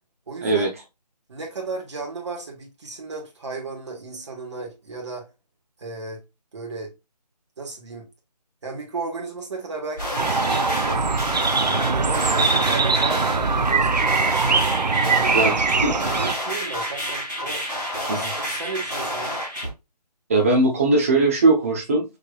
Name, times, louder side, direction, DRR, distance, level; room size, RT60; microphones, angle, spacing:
voice 1, 0.3-0.7 1.3-5.3 5.8-6.2 6.5-6.9 7.6-8.1 8.6-11.1 11.7-14.5 15.0-17.6 18.1-19.4, right 3 dB, 45° right, 1.5 m, -34 dB
sound 1, 10.0-19.7, equal, ahead, 0.4 m, -29 dB
sound 2, 10.2-16.4, right 4 dB, 85° right, 0.6 m, -22 dB
voice 2, 20.3-22.0, right 2 dB, 20° right, 0.8 m, -19 dB
4.9 x 3.4 x 2.3 m
figure-of-eight pair, 160°, 21 cm